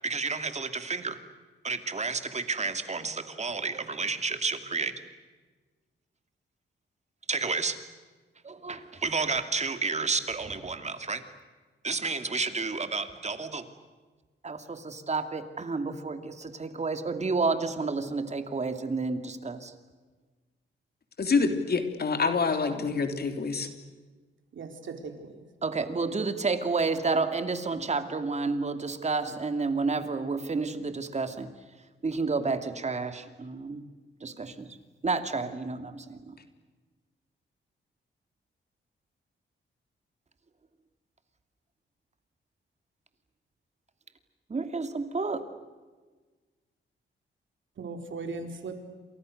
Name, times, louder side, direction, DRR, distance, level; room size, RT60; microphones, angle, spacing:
voice 1, 0.0-1.2 1.6-4.9 7.3-7.8 8.4-11.2 11.8-13.6 14.4-19.7 25.6-31.5 32.0-33.8 34.2-34.8 35.0-36.4 44.5-45.4, right 4 dB, 35° right, 9 dB, 2.6 m, -30 dB
voice 2, 21.2-23.7, left 4 dB, 50° left, 7 dB, 3.4 m, -26 dB
voice 3, 24.5-25.4 47.8-48.8, right 4 dB, 70° right, 6 dB, 4.4 m, -38 dB
29.5 x 27.0 x 6.6 m, 1.3 s
cardioid pair, 110°, 20 cm